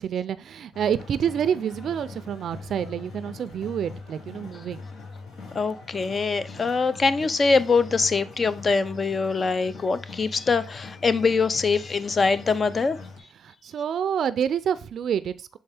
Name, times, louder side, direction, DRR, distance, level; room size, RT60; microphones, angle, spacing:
voice 1, 0.0-4.8 6.5-6.7 13.4-15.6, right 8 dB, 65° right, 0.4 m, -28 dB
sound 1, 0.7-13.2, left 4 dB, 70° left, 1.5 m, -42 dB
voice 2, 5.5-13.0, left 4 dB, 35° left, 0.6 m, -23 dB
6.5 x 4.3 x 3.4 m
cardioid pair, 90°, 0 cm